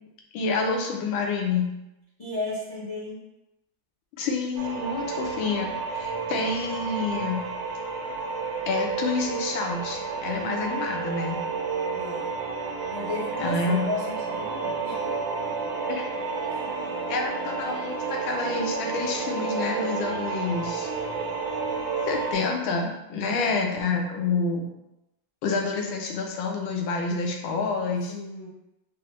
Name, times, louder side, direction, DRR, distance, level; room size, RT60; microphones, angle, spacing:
voice 1, 0.3-1.7 4.2-7.4 8.7-11.4 13.4-13.9 15.9-16.1 17.1-20.9 22.1-24.7 25.4-28.1, left 4 dB, 80° left, 2 dB, 1.4 m, -28 dB
voice 2, 2.2-3.2 11.9-12.3 12.9-15.2 16.5-16.7 23.2-23.7 28.1-28.5, left 2 dB, 55° left, -9 dB, 0.4 m, -35 dB
sound 1, 4.6-22.3, right 4 dB, 80° right, 1.4 m, -31 dB
4.7 x 2.0 x 3.0 m, 0.93 s
omnidirectional pair, 2.1 m